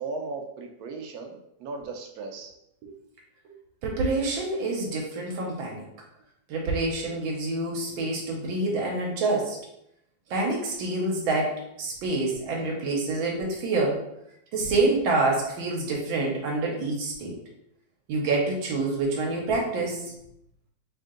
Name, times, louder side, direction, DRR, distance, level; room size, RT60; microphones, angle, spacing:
voice 1, 0.0-2.5, right 4 dB, 70° right, 3 dB, 0.9 m, -36 dB
voice 2, 3.8-5.8 6.5-9.6 10.3-14.0 14.5-17.4 18.1-20.1, right 2 dB, 85° right, -1 dB, 1.6 m, -27 dB
3.5 x 2.7 x 3.7 m, 0.78 s
omnidirectional pair, 2.1 m